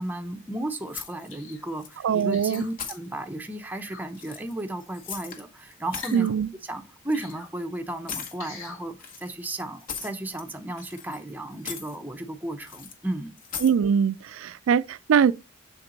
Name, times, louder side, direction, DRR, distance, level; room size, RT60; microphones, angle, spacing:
voice 1, 0.0-6.3 6.6-13.4, right 1 dB, 10° right, 0.6 m, -34 dB
sound 1, 0.9-1.5 1.8-2.2 2.5-3.0 4.1-5.4 5.7-6.2 7.1-7.3 8.1-8.4 9.0-10.5 10.8-11.3 11.5-12.0 12.7-12.9 13.4-13.8, left 6 dB, 40° left, 1.0 m, -38 dB
sound 2, 1.3-1.7 2.3-2.7 3.7-4.0 6.0-6.3 7.1-7.5 8.4-8.8 9.4-9.5, left 4 dB, 85° left, 2.6 m, -43 dB
voice 2, 2.0-2.6 6.1-6.5 13.6-15.3, right 7 dB, 75° right, 0.3 m, -22 dB
7.0 x 4.4 x 3.8 m
head